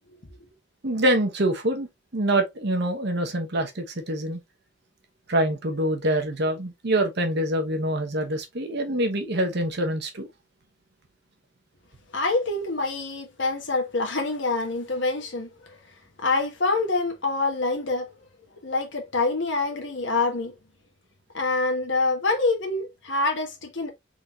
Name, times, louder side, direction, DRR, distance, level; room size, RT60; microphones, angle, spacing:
voice 1, 0.8-4.4 5.3-10.3, right 1 dB, 55° right, 1.0 m, -25 dB
voice 2, 12.1-15.8 16.2-18.1 18.6-20.5 21.3-23.9, left 3 dB, 65° left, 1.4 m, -26 dB
4.0 x 3.6 x 2.8 m
head